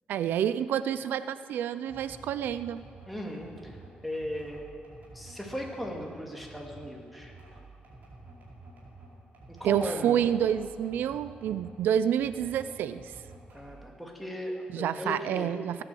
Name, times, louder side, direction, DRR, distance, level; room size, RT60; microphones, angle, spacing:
voice 1, 0.1-2.8 9.6-13.1 14.7-15.8, right 9 dB, 85° right, 14 dB, 0.4 m, -28 dB
sound 1, 1.8-11.8 12.1-13.9, right 2 dB, 60° right, 4.6 m, -50 dB
voice 2, 3.1-3.8 4.0-4.6 5.1-7.3 9.5-10.2 13.5-15.5, equal, ahead, -1 dB, 2.2 m, -37 dB
17.5 x 10.0 x 7.7 m, 2.3 s
cardioid pair, 135°, 3 cm